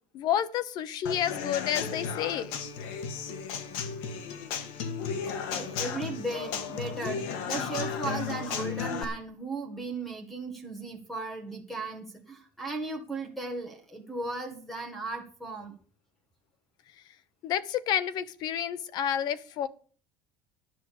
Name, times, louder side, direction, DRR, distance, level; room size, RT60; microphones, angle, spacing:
voice 1, 0.1-2.6 17.4-19.7, left 10 dB, 45° left, 15 dB, 0.9 m, -30 dB
Human voice / Acoustic guitar / Drum, 1.1-9.0, left 6 dB, 70° left, 1.7 m, -34 dB
voice 2, 5.2-15.7, right 3 dB, ahead, 5 dB, 1.8 m, -36 dB
11.0 x 6.4 x 8.5 m, 0.43 s
cardioid pair, 165°, 10 cm